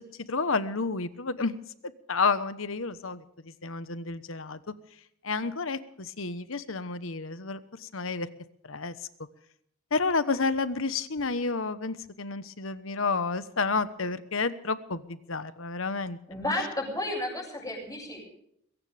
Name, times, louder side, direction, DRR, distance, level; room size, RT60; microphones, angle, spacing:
voice 1, 0.3-1.6 2.1-3.2 3.6-4.6 5.2-8.3 8.7-8.9 9.9-16.2, left 4 dB, 70° left, 13 dB, 1.2 m, -30 dB
voice 2, 16.3-18.3, left 1 dB, 15° left, 0 dB, 7.5 m, -32 dB
21.5 x 17.0 x 3.5 m, 0.73 s
head